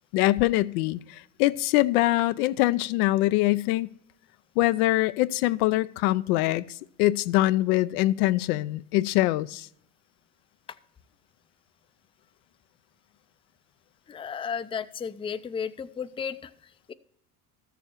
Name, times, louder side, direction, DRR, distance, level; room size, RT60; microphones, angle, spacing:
voice 1, 0.1-3.9 4.6-9.7, left 17 dB, 75° left, 0.6 m, -24 dB
voice 2, 14.1-16.9, left 6 dB, 10° left, 0.5 m, -34 dB
13.5 x 7.1 x 4.4 m
hypercardioid pair, 85°, 45 cm